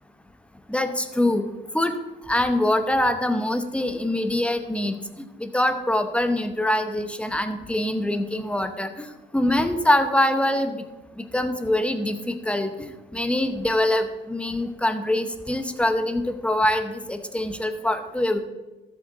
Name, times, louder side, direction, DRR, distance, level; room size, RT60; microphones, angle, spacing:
voice 1, 0.7-1.4 1.7-1.9 2.3-4.9 5.4-9.1 9.3-10.8 11.3-18.4, left 1 dB, 5° left, 8 dB, 0.9 m, -24 dB
13.0 x 7.7 x 4.0 m, 1.1 s
cardioid pair, 90°, 20 cm